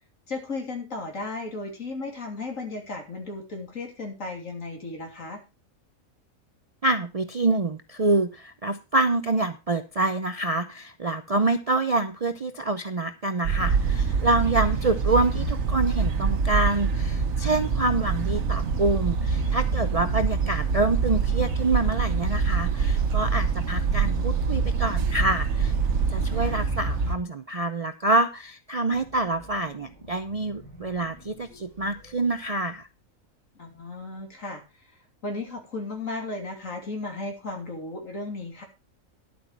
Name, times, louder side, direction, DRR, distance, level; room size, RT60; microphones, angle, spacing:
voice 1, 0.3-5.4 26.3-26.6 33.6-34.6 35.2-38.6, left 3 dB, 65° left, 2 dB, 3.3 m, -35 dB
voice 2, 6.8-25.7 26.1-32.9, right 2 dB, 40° right, 9 dB, 0.5 m, -26 dB
sound 1, 13.4-26.7, right 8 dB, 80° right, 1.2 m, -29 dB
sound 2, 13.6-27.2, right 3 dB, 55° right, 1.5 m, -28 dB
sound 3, 28.9-33.2, equal, 30° left, 3.4 m, -51 dB
11.5 x 8.2 x 4.5 m, 0.29 s
omnidirectional pair, 1.4 m